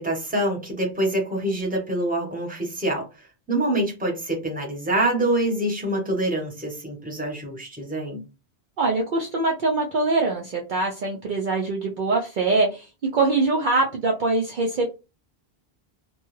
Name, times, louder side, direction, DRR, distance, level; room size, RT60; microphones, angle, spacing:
voice 1, 0.0-3.1 3.5-8.2, right 1 dB, 10° right, -1 dB, 0.8 m, -25 dB
voice 2, 8.8-12.9 13.1-14.9, right 3 dB, 60° right, 0 dB, 0.6 m, -23 dB
2.3 x 2.2 x 3.1 m, 0.29 s
omnidirectional pair, 1.1 m